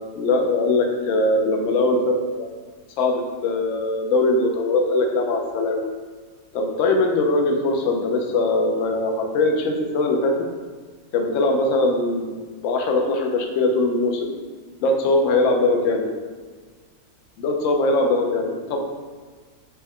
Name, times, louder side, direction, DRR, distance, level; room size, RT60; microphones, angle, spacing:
voice 1, 0.1-2.5 3.0-5.8 6.5-10.3 11.1-12.4 12.6-14.3 14.8-16.1 17.4-18.8, left 2 dB, 65° left, 2 dB, 0.8 m, -21 dB
4.3 x 2.1 x 3.5 m, 1.5 s
omnidirectional pair, 1.7 m